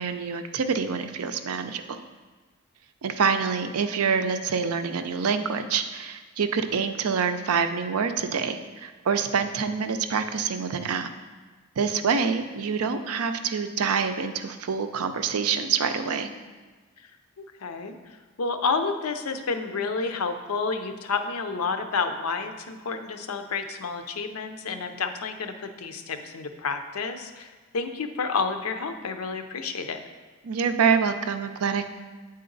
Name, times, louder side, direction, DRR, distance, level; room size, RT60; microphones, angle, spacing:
voice 1, 0.0-2.0 3.0-11.1 11.8-16.3 30.4-31.9, right 6 dB, 90° right, 9 dB, 0.5 m, -26 dB
voice 2, 17.4-17.9 18.4-30.0, left 4 dB, 85° left, 8 dB, 0.6 m, -30 dB
8.5 x 4.0 x 3.9 m, 1.3 s
head